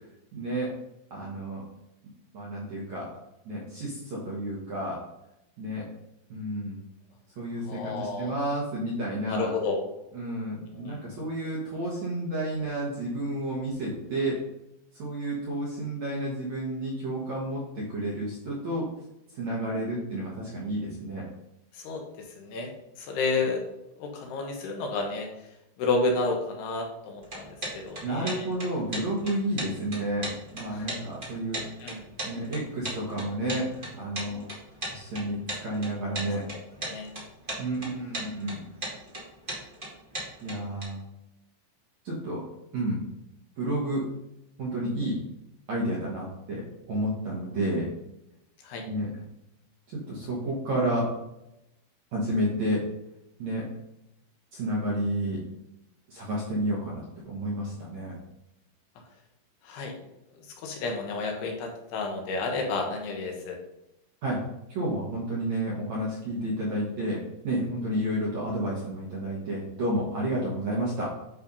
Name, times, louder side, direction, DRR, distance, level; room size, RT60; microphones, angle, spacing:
voice 1, 0.3-0.7 1.1-1.6 2.3-3.1 3.4-5.0 5.6-5.9 6.3-6.8 7.4-9.5 10.1-14.4 14.9-18.9 19.3-21.3 28.0-31.6 32.2-34.5 34.9-36.4 37.6-38.6 40.4-41.0 42.0-42.4 42.7-43.0 43.6-44.0 44.6-45.2 45.7-47.9 48.8-49.1 50.1-51.1 52.1-52.8 53.4-53.6 54.5-55.4 56.1-58.2 64.2-64.4 64.7-71.1, right 1 dB, 60° right, -5 dB, 2.0 m, -31 dB
voice 2, 7.7-8.4 9.3-9.8 10.8-11.0 21.7-22.0 22.4-22.7 23.0-23.7 24.0-25.3 25.8-28.5 30.7-31.0 31.8-32.0 36.8-37.1 48.6-48.8 59.6-59.9 60.6-63.6, left 3 dB, 70° left, 2 dB, 2.9 m, -31 dB
sound 1, 27.2-40.8, right 1 dB, 25° right, 1.0 m, -37 dB
10.0 x 3.5 x 5.4 m, 0.86 s
omnidirectional pair, 5.2 m